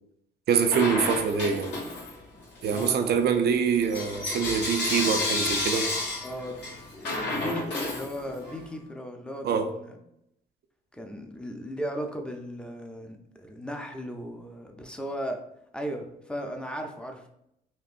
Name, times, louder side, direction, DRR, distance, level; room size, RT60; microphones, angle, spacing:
voice 1, 0.5-1.7 2.6-5.9 9.4-9.7, right 6 dB, 60° right, 7 dB, 0.5 m, -25 dB
Bell / Coin (dropping), 0.7-2.2 2.6-8.6, left 2 dB, 65° left, 1.2 m, -31 dB
voice 2, 2.7-3.3 6.2-6.6 6.9-10.0 10.9-15.4 15.7-17.3, equal, 5° left, 4 dB, 0.6 m, -36 dB
4.3 x 2.5 x 2.5 m, 0.78 s
supercardioid pair, 75°, 19 cm